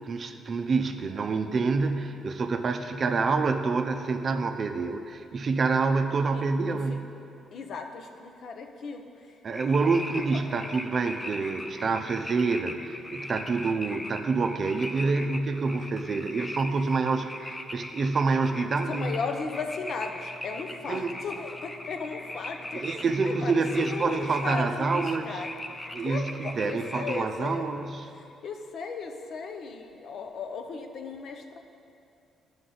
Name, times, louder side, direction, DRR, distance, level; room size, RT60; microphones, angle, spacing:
voice 1, 0.0-7.1 9.4-19.2 20.9-21.1 22.7-25.3 25.9-28.0, right 4 dB, 45° right, 7 dB, 0.5 m, -27 dB
voice 2, 7.5-9.4 9.8-10.0 10.3-10.4 18.9-25.6 26.0-27.7 28.1-31.6, left 4 dB, 60° left, 5 dB, 0.7 m, -36 dB
sound 1, 9.5-27.2, left 1 dB, 15° left, 0.5 m, -40 dB
11.0 x 5.2 x 3.9 m, 2.6 s
cardioid pair, 90°, 0 cm